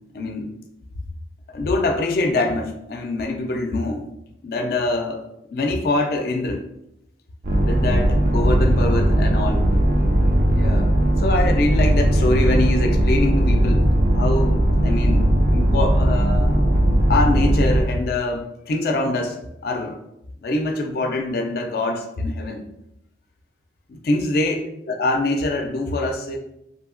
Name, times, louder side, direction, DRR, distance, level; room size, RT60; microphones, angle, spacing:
voice 1, 0.1-0.5 1.5-4.1 4.4-5.2 5.5-6.6 7.6-9.7 10.6-10.9 11.2-13.9 14.2-16.6 16.9-19.4 19.6-20.0 20.4-22.6 23.9-26.4, left 2 dB, 55° left, 4 dB, 0.3 m, -24 dB
sound 1, 7.4-17.8, right 1 dB, 45° right, 0.4 m, -18 dB
2.7 x 2.7 x 2.5 m, 0.82 s
head